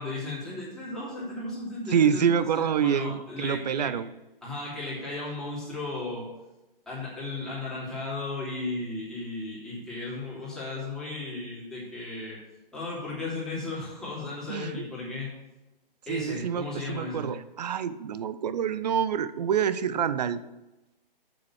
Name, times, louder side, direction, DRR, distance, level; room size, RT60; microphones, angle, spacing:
voice 1, 0.0-3.9 4.4-6.3 6.9-12.4 12.7-15.3 16.1-17.3, left 2 dB, ahead, -8 dB, 3.0 m, -35 dB
voice 2, 1.9-4.1 14.5-14.9 16.1-20.4, right 8 dB, 45° right, 14 dB, 0.6 m, -27 dB
7.1 x 6.6 x 6.2 m, 1.0 s
figure-of-eight pair, 140°, 29 cm